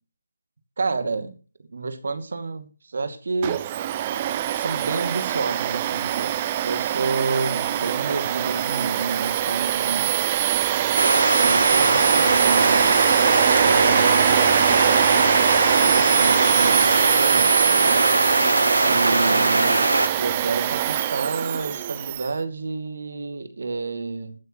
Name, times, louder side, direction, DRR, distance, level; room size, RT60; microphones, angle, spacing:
voice 1, 0.8-1.3 1.7-3.6 4.5-6.3 6.6-10.1 11.4-12.9 13.6-14.5 15.7-18.2 18.9-24.4, right 3 dB, 55° right, 9 dB, 2.3 m, -29 dB
Domestic sounds home sounds, 3.4-22.3, right 11 dB, 25° right, 0.7 m, -23 dB
sound 1, 11.0-20.1, right 2 dB, 75° right, 1.4 m, -20 dB
20.5 x 9.2 x 3.1 m, 0.35 s
figure-of-eight pair, 155°, 0 cm